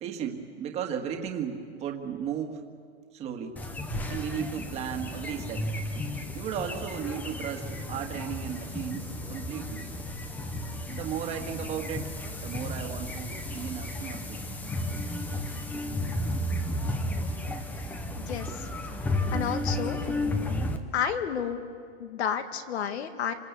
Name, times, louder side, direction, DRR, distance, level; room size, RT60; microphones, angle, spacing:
voice 1, 0.0-2.6 3.1-3.6 4.1-5.6 6.3-9.9 10.9-12.1 12.4-14.4, right 8 dB, 20° right, 3 dB, 1.8 m, -35 dB
sound 1, 3.6-20.8, left 1 dB, 5° left, 0.6 m, -33 dB
voice 2, 18.2-18.7 19.3-20.0 20.9-21.6 22.0-23.3, left 8 dB, 70° left, 8 dB, 2.2 m, -31 dB
26.5 x 26.5 x 8.3 m, 2.2 s
supercardioid pair, 175°, 34 cm